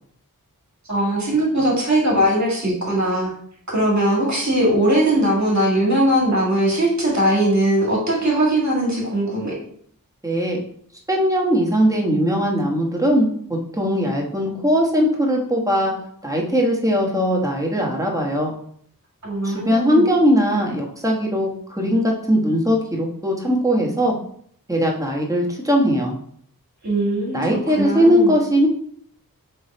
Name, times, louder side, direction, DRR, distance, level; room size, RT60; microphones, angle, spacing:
voice 1, 0.9-3.3 3.7-9.6 19.2-20.1 26.8-28.3, right 1 dB, 50° right, -3 dB, 1.8 m, -20 dB
voice 2, 10.2-10.6 11.1-13.3 13.7-15.9 16.2-18.5 19.4-24.2 24.7-26.1 27.3-28.7, equal, 10° right, -1 dB, 1.1 m, -19 dB
3.5 x 3.4 x 4.2 m, 0.63 s
wide cardioid pair, 50°, 35 cm